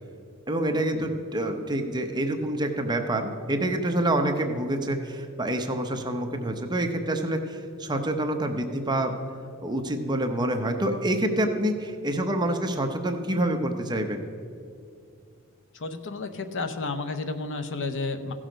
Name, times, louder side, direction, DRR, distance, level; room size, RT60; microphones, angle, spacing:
voice 1, 0.5-9.1 9.6-14.2, right 1 dB, 20° right, 4 dB, 0.7 m, -27 dB
voice 2, 15.7-18.3, left 3 dB, 60° left, 8 dB, 0.7 m, -32 dB
15.5 x 6.3 x 5.1 m, 2.4 s
head